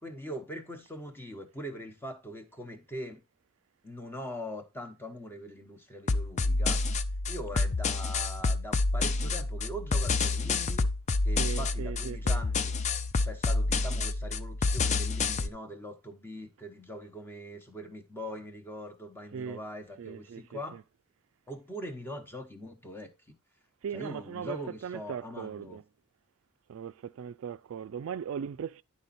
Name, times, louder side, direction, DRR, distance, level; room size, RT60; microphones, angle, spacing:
voice 1, 0.0-3.2 3.8-6.8 7.3-10.9 11.2-12.8 13.2-20.8 21.5-23.3 23.9-25.8, equal, 10° left, 1.0 m, -42 dB
sound 1, 6.1-15.5, left 3 dB, 35° left, 0.4 m, -28 dB
voice 2, 11.4-12.4 19.3-19.6 20.0-20.6 23.8-25.8 26.7-28.8, right 7 dB, 70° right, 0.3 m, -38 dB
10.5 x 4.1 x 4.2 m
head